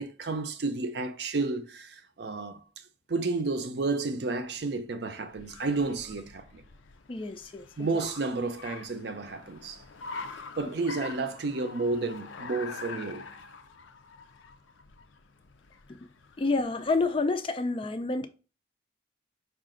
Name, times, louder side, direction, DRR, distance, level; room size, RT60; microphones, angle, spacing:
voice 1, 0.0-2.6 3.1-6.6 7.8-9.8 10.6-13.3, right 3 dB, 60° right, 0.5 m, -31 dB
Car, 4.7-17.3, left 4 dB, 90° left, 0.5 m, -46 dB
voice 2, 7.1-8.0 16.4-18.3, left 3 dB, 30° left, 0.3 m, -29 dB
4.8 x 2.5 x 3.7 m
head